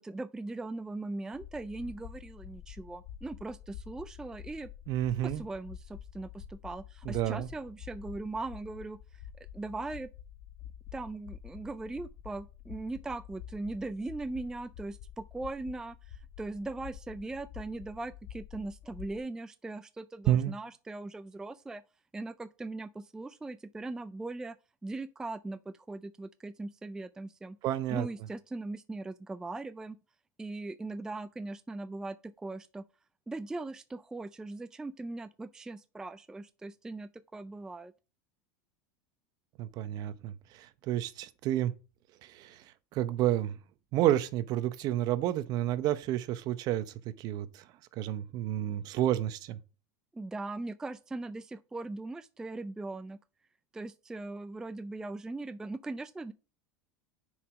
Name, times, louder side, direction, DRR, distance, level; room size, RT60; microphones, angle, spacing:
voice 1, 0.0-4.7 5.2-9.2 9.5-10.1 10.9-21.8 22.1-24.6 24.8-27.6 27.9-30.0 30.4-32.8 33.3-37.9 50.1-53.2 53.7-56.3, right 2 dB, 5° right, 0.3 m, -40 dB
sound 1, 1.3-19.2, left 10 dB, 60° left, 1.6 m, -48 dB
voice 2, 4.9-5.4 7.0-7.5 20.3-20.5 27.6-28.1 39.6-41.7 42.2-42.6 42.9-43.6 43.9-47.6 47.9-49.6, right 12 dB, 45° right, 0.8 m, -30 dB
7.1 x 4.8 x 5.1 m
supercardioid pair, 135°, 9 cm